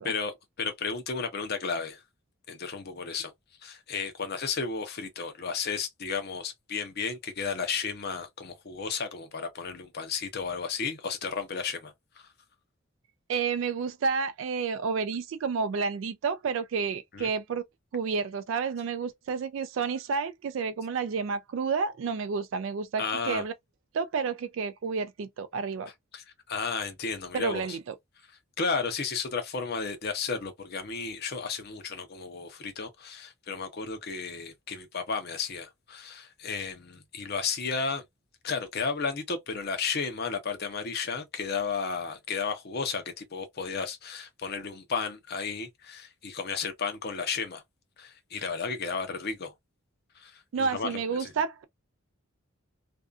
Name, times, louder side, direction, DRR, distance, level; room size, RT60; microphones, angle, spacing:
voice 1, 0.0-2.0 2.5-3.3 3.6-12.3 17.1-17.3 23.0-23.4 26.1-27.8 28.6-38.0 38.4-47.6 48.0-49.5 50.2-51.3, left 5 dB, 50° left, 0.7 m, -33 dB
voice 2, 13.3-17.6 17.9-23.5 23.9-25.9 27.3-28.0 50.5-51.6, right 5 dB, 65° right, 0.3 m, -30 dB
2.6 x 2.3 x 2.3 m
head